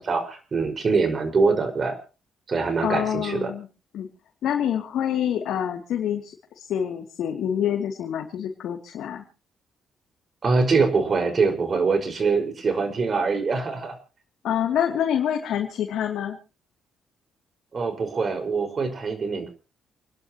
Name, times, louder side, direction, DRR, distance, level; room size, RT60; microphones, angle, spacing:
voice 1, 0.0-2.0 2.5-3.5 10.4-13.9 17.7-19.5, right 4 dB, 40° right, 6 dB, 5.2 m, -23 dB
voice 2, 2.8-3.7 3.9-4.1 4.4-9.2 14.4-16.4, left 9 dB, 75° left, 1 dB, 2.7 m, -26 dB
29.0 x 11.5 x 3.0 m, 0.34 s
cardioid pair, 90°, 0 cm